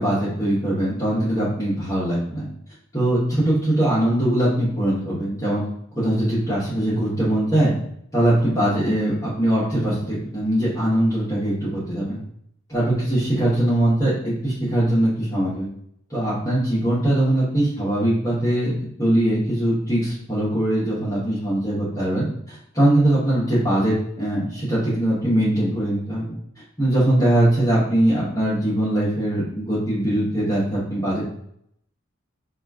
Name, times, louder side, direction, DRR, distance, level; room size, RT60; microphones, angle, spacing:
voice 1, 0.0-2.5 2.9-5.6 5.9-7.7 8.1-12.2 12.7-15.7 16.1-26.2 26.8-31.3, right 1 dB, 15° left, -10 dB, 1.0 m, -21 dB
2.9 x 2.4 x 3.4 m, 0.71 s
head